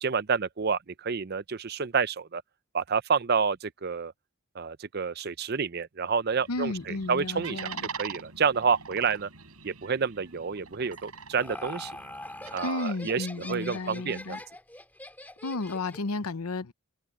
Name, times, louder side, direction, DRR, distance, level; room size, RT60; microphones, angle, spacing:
voice 1, 0.0-2.4 2.7-4.1 4.5-7.6 7.9-9.3 9.6-11.9 12.5-14.4, right 5 dB, 45° right, 0.6 m, -29 dB
sound 1, 6.3-12.6, right 6 dB, 85° right, 7.3 m, -43 dB
voice 2, 6.5-7.9 12.6-14.4 15.4-16.7, left 3 dB, 90° left, 0.9 m, -33 dB
Laughter, 10.9-16.1, left 1 dB, 10° left, 2.7 m, -43 dB
head